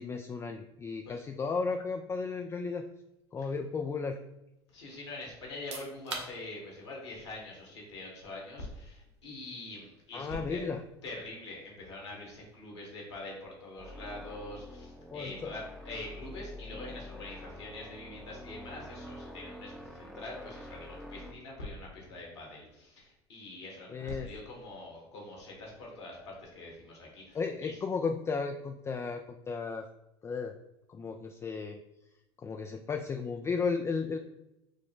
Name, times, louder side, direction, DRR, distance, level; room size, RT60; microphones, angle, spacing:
voice 1, 0.0-2.9 3.3-4.2 10.1-10.8 15.1-15.5 23.9-24.3 27.3-29.8 30.2-30.5 30.9-31.8 32.4-34.2, left 4 dB, 20° left, 5 dB, 0.3 m, -34 dB
voice 2, 4.7-10.6 11.0-27.8, left 2 dB, 75° left, -2 dB, 1.7 m, -44 dB
sound 1, 5.5-18.1, right 4 dB, 80° right, 0.9 m, -52 dB
sound 2, 13.8-21.3, left 1 dB, ahead, 0.7 m, -46 dB
6.3 x 2.1 x 3.7 m, 0.89 s
hypercardioid pair, 80°, 14 cm